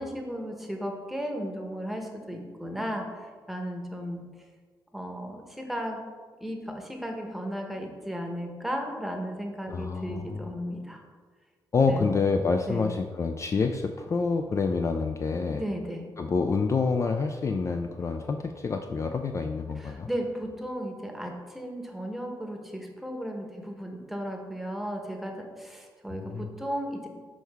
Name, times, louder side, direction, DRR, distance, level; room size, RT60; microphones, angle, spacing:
voice 1, 0.0-4.2 4.9-6.0 6.4-11.0 11.9-12.1 12.6-12.9 15.5-16.1 19.7-27.1, equal, ahead, 2 dB, 1.0 m, -35 dB
voice 2, 9.7-10.5 11.7-15.6 16.2-20.1 26.1-26.5, left 4 dB, 35° left, 5 dB, 0.3 m, -27 dB
6.2 x 4.5 x 3.5 m, 1.5 s
cardioid pair, 85°, 9 cm